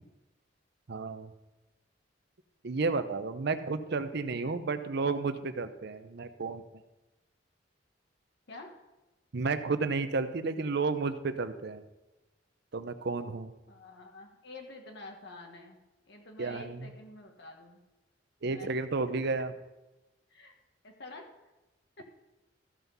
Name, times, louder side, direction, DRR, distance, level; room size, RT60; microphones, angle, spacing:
voice 1, 0.9-1.3 2.6-6.6 9.3-11.8 12.7-13.5 16.4-16.9 18.4-19.5, right 4 dB, 60° right, 11 dB, 0.7 m, -32 dB
voice 2, 13.7-15.8 16.1-17.8 18.4-18.8 20.3-20.5 20.8-21.3, left 2 dB, 65° left, 2 dB, 1.3 m, -48 dB
14.0 x 5.9 x 5.5 m, 1.0 s
head